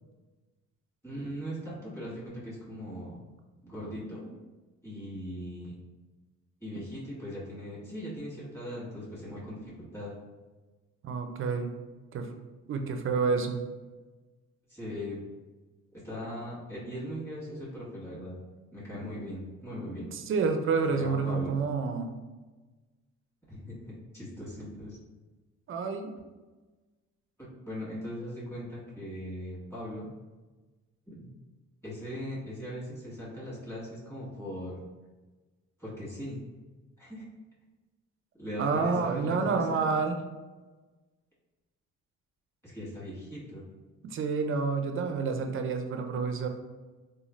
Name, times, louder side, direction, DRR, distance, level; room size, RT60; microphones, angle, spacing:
voice 1, 1.0-3.3 3.6-4.3 4.8-5.8 6.6-10.2 14.7-15.2 15.9-18.4 18.7-20.1 20.9-21.5 23.5-25.0 27.4-30.1 31.1-31.3 31.8-34.8 35.8-36.4 37.0-37.2 38.4-39.7 42.6-43.6, equal, 10° left, -9 dB, 1.5 m, -39 dB
voice 2, 11.0-11.7 12.1-12.3 12.7-13.6 20.1-22.1 25.7-26.1 38.6-40.2 44.1-46.5, right 5 dB, 45° right, 6 dB, 0.4 m, -29 dB
3.1 x 2.3 x 2.5 m, 1.2 s
cardioid pair, 90°, 30 cm